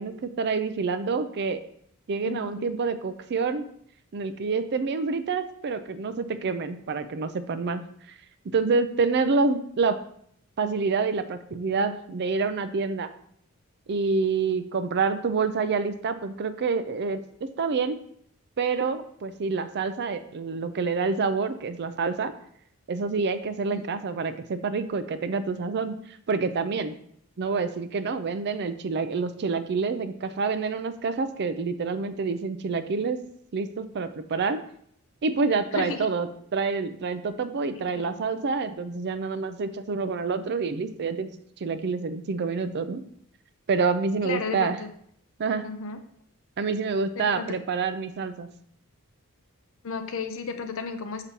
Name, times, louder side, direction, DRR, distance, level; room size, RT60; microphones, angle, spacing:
voice 1, 0.0-1.6 2.1-3.7 4.1-7.8 8.5-10.0 10.6-13.1 13.9-18.0 18.6-22.3 22.9-27.0 27.4-33.2 33.5-34.6 35.2-41.4 41.6-43.0 43.7-44.8 45.4-45.6 46.6-48.5, right 4 dB, 50° right, 11 dB, 0.4 m, -27 dB
voice 2, 2.2-2.7 23.7-23.9 35.7-36.1 37.9-38.1 44.2-44.9 45.6-46.0 47.1-47.5 49.8-51.2, left 4 dB, 65° left, 7 dB, 0.7 m, -33 dB
6.8 x 5.9 x 2.8 m, 0.67 s
head